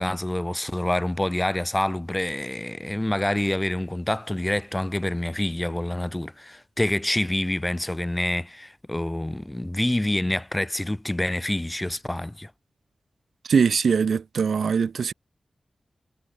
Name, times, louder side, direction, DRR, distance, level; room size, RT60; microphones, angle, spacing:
voice 1, 0.0-12.5, left 1 dB, 15° left, 6.0 m, -27 dB
voice 2, 13.5-15.1, right 6 dB, 90° right, 1.6 m, -22 dB
wide cardioid pair, 100°, 0 cm